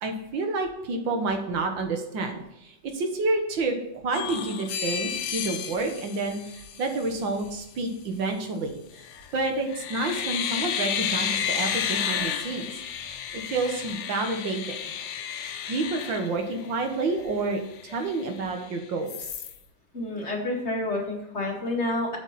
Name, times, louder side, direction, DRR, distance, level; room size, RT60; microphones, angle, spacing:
voice 1, 0.0-8.8 9.3-12.7 13.3-14.9 15.7-19.3, right 3 dB, 80° right, 4 dB, 2.1 m, -29 dB
sound 1, 4.1-7.1 9.0-9.3 9.7-17.0 17.4-17.5 17.8-18.7 19.1-19.6, left 8 dB, 85° left, 1.5 m, -32 dB
voice 2, 19.9-22.2, left 2 dB, 35° left, -1 dB, 2.1 m, -29 dB
8.3 x 7.0 x 4.2 m, 0.87 s
omnidirectional pair, 2.0 m